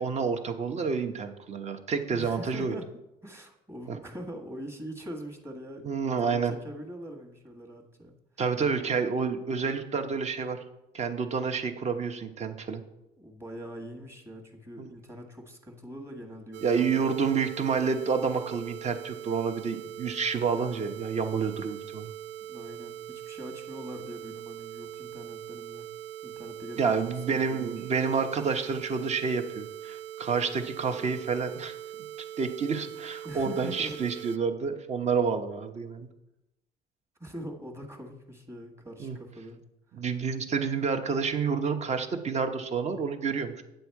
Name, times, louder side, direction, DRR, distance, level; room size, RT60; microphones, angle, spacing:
voice 1, 0.0-2.7 3.9-4.0 5.8-6.5 8.4-10.6 10.9-12.8 14.8-14.9 16.6-22.1 26.8-31.8 32.4-36.1 39.0-39.2 39.9-43.6, right 5 dB, 40° right, 7 dB, 1.0 m, -29 dB
voice 2, 2.1-2.9 3.2-8.1 13.2-17.1 22.5-25.9 26.2-26.9 27.3-27.9 33.2-34.0 37.2-40.0, equal, 15° right, 2 dB, 1.5 m, -43 dB
sound 1, 16.5-34.4, right 11 dB, 85° right, 0.4 m, -42 dB
9.1 x 6.9 x 4.7 m, 0.91 s
cardioid pair, 110°, 17 cm